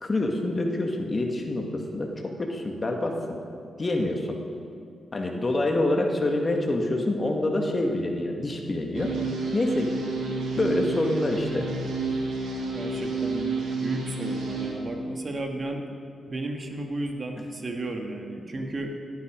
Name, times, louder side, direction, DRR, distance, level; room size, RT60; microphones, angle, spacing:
voice 1, 0.0-3.4 3.8-4.4 5.1-9.1 9.5-9.9 10.6-11.7, left 2 dB, 40° left, 2 dB, 2.1 m, -26 dB
sound 1, 8.9-14.7, right 3 dB, 80° right, 2.3 m, -30 dB
voice 2, 12.7-13.6 13.8-15.8 16.3-18.9, right 2 dB, 45° right, 3 dB, 1.9 m, -33 dB
17.0 x 9.5 x 5.2 m, 2.5 s
supercardioid pair, 40°, 0 cm